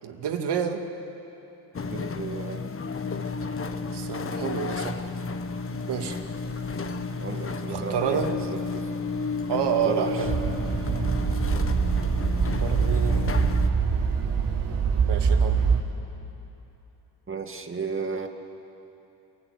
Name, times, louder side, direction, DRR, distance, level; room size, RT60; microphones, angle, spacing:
voice 1, 0.0-0.8 3.9-5.0 5.9-6.2 7.7-8.3 9.5-10.3 12.6-13.4 15.1-15.7, right 8 dB, 65° right, 5 dB, 2.3 m, -29 dB
sound 1, 1.7-13.7, left 4 dB, 30° left, 1.3 m, -32 dB
voice 2, 1.9-2.7 6.8-8.9 9.8-10.2 17.3-18.3, right 4 dB, 30° right, 5 dB, 2.2 m, -34 dB
sound 2, 10.2-15.8, right 5 dB, 50° right, 3.4 m, -24 dB
29.5 x 16.5 x 9.8 m, 3.0 s
cardioid pair, 95°, 44 cm